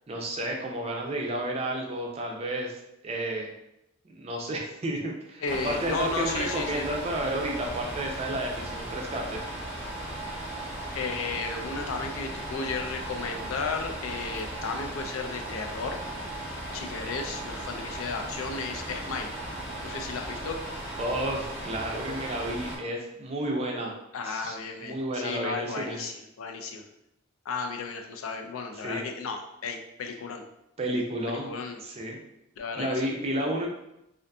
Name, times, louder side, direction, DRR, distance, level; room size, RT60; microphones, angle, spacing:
voice 1, 0.1-3.5 4.1-9.4 21.0-23.9 24.2-26.0 28.8-29.0 30.8-31.5 31.8-32.2 32.8-33.7, right 1 dB, 30° right, 0 dB, 0.4 m, -31 dB
voice 2, 5.4-6.9 10.9-16.0 16.7-19.3 19.8-20.6 24.1-26.9 27.5-30.5 31.3-31.8 32.6-33.1, left 4 dB, 80° left, 4 dB, 0.4 m, -34 dB
sound 1, 5.4-22.8, right 1 dB, 10° right, 0.8 m, -37 dB
2.6 x 2.4 x 2.3 m, 0.84 s
head